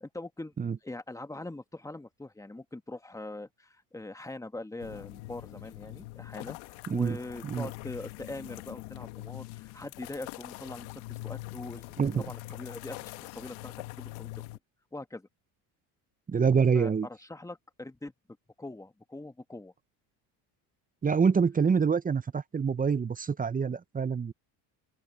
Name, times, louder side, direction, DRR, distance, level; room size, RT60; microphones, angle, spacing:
voice 1, 0.0-0.5 0.8-14.3 14.9-15.3 16.7-18.1 18.6-19.7, left 2 dB, 5° left, 1.6 m, -42 dB
sound 1, 4.8-14.6, left 21 dB, 80° left, 1.5 m, -43 dB
voice 2, 6.9-7.2 7.4-7.7 12.0-12.2 16.3-17.1 21.0-24.3, right 6 dB, 20° right, 0.7 m, -26 dB
open air
supercardioid pair, 90°, 46 cm